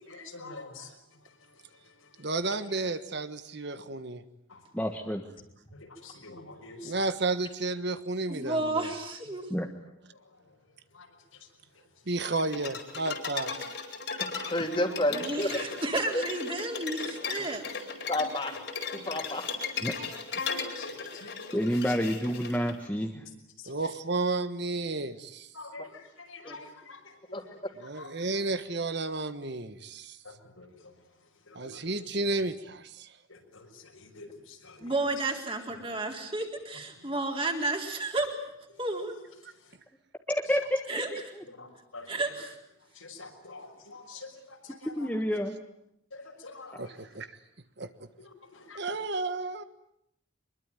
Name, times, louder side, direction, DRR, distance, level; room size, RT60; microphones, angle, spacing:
voice 1, 0.0-2.3 4.5-4.6 5.7-7.0 9.8-10.6 10.9-11.5 11.7-11.8 17.4-17.5 19.1-19.2 19.8-21.9 23.1-23.3 23.6-23.8 25.5-28.1 30.2-30.9 31.4-31.8 33.3-34.9 35.7-35.8 36.9-37.1 38.7-38.9 39.4-39.8 41.5-42.4 42.8-45.2 46.1-47.0 48.2-48.8, left 3 dB, 85° left, 2 dB, 6.0 m, -48 dB
voice 2, 2.2-4.2 6.8-8.9 12.1-13.5 23.7-25.5 27.8-30.2 31.5-33.1 46.8-47.3 47.8-48.1 48.7-49.6, right 3 dB, 55° right, 11 dB, 1.4 m, -32 dB
voice 3, 4.7-5.2 9.5-9.7 19.8-19.9 21.5-23.2 40.3-40.8 41.1-41.2 45.0-45.5, equal, 5° left, 3 dB, 1.4 m, -28 dB
voice 4, 8.3-9.4 15.1-17.6 34.8-38.3 38.8-39.2 40.9-41.1 42.1-42.5, right 2 dB, 25° right, 2 dB, 4.0 m, -32 dB
sound 1, 12.2-22.7, left 5 dB, 55° left, 4.5 m, -37 dB
voice 5, 14.1-15.5 18.1-18.6 18.9-19.4 26.4-26.6 27.3-27.4 34.8-34.9, left 1 dB, 25° left, 5 dB, 3.1 m, -30 dB
25.0 x 22.0 x 9.2 m, 0.77 s
head